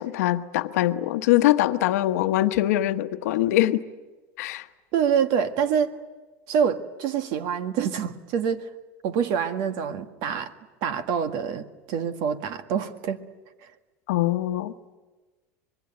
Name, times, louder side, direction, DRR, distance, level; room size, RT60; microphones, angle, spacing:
voice 1, 0.0-3.8 4.4-4.7 14.1-14.7, left 15 dB, 90° left, 9 dB, 1.1 m, -23 dB
voice 2, 4.9-5.9 6.5-8.7 9.0-10.5 10.8-13.2, right 7 dB, 60° right, 9 dB, 1.8 m, -26 dB
25.5 x 22.0 x 9.3 m, 1.3 s
supercardioid pair, 135°, 8 cm